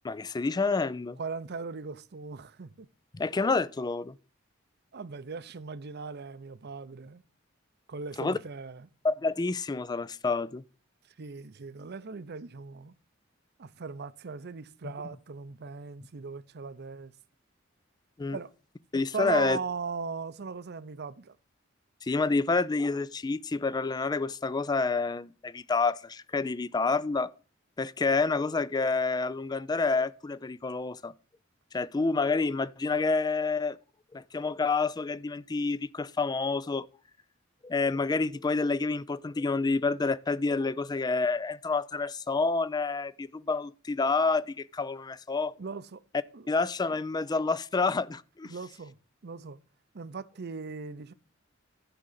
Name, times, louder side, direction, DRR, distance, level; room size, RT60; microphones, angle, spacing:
voice 1, 0.0-1.2 3.1-4.1 8.2-8.4 9.0-10.6 18.2-18.4 18.9-19.6 22.0-27.3 27.8-31.1 31.7-33.8 34.1-36.9 37.6-45.5 46.5-48.5, left 3 dB, 20° left, 0.3 m, -28 dB
voice 2, 1.2-2.9 4.9-7.2 7.9-8.9 11.2-12.9 13.6-17.1 18.3-18.5 19.1-21.4 45.6-46.0 46.3-46.4 48.4-48.9 49.2-49.6 49.9-51.1, right 4 dB, 55° right, 0.6 m, -38 dB
11.5 x 3.8 x 7.3 m
head